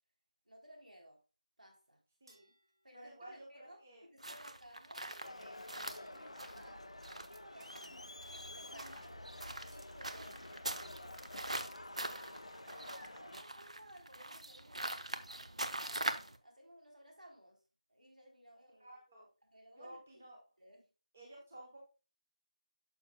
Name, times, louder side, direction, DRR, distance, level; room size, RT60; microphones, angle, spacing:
voice 1, 0.5-1.2 1.6-2.0 2.8-8.0 8.3-9.2 9.7-15.1 15.5-17.6 17.9-18.9 19.4-20.0 20.6-20.9, equal, 80° right, 3.4 m, -58 dB
voice 2, 2.2-2.5 2.9-4.0 7.7-8.2 8.7-9.2 10.1-10.6 18.8-19.3 19.7-20.4 21.1-21.8, right 1 dB, 10° right, 0.8 m, -55 dB
sound 1, 2.3-3.8 5.9-7.7 9.7-10.8, right 1 dB, 35° right, 2.6 m, -69 dB
sound 2, 4.2-16.4, right 1 dB, 55° right, 0.8 m, -43 dB
Crowd, 5.2-13.4, left 2 dB, 50° left, 0.4 m, -50 dB
9.4 x 6.5 x 2.2 m
figure-of-eight pair, 180°, 4 cm